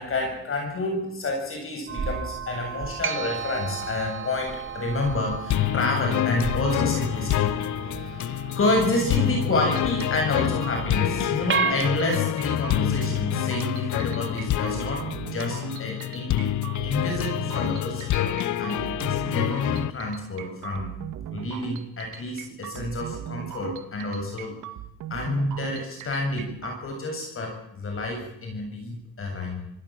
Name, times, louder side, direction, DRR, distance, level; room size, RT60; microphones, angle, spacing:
voice 1, 0.0-7.6 8.0-8.3 8.5-15.0 15.3-21.0 21.3-24.6 25.1-29.7, left 2 dB, 45° left, 2 dB, 7.7 m, -29 dB
sound 1, 1.9-11.7, right 6 dB, 40° right, 3.4 m, -33 dB
sound 2, 5.5-19.9, left 13 dB, 75° left, 1.0 m, -27 dB
sound 3, 8.6-26.8, right 10 dB, 90° right, 2.2 m, -38 dB
27.0 x 17.5 x 7.7 m, 0.77 s
cardioid pair, 90°, 30 cm